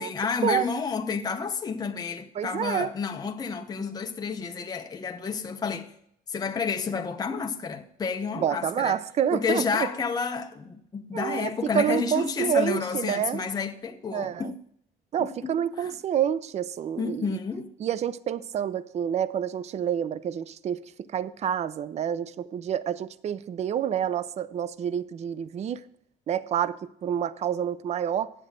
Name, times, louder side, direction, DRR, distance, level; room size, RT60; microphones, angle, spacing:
voice 1, 0.0-5.9 6.3-9.0 9.3-14.6 15.2-15.9 17.0-17.7, left 5 dB, 25° left, 0.8 m, -30 dB
voice 2, 2.4-2.9 8.4-9.9 11.1-13.4 14.1-14.5 15.1-17.4 17.8-25.8 26.3-28.3, right 9 dB, 40° right, 0.5 m, -28 dB
9.8 x 7.8 x 5.0 m
cardioid pair, 110°, 17 cm